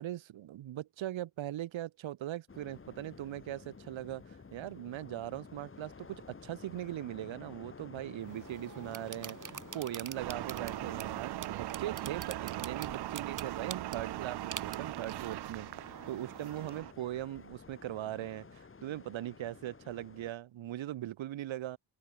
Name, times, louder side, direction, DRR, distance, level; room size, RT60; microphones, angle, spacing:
voice 1, 0.0-21.8, right 13 dB, 80° right, 4.7 m, -40 dB
sound 1, 2.5-20.3, left 4 dB, 25° left, 3.8 m, -53 dB
sound 2, 8.2-16.8, right 7 dB, 40° right, 5.1 m, -47 dB
sound 3, 10.2-16.9, right 15 dB, 60° right, 0.6 m, -40 dB
open air
cardioid pair, 110°, 46 cm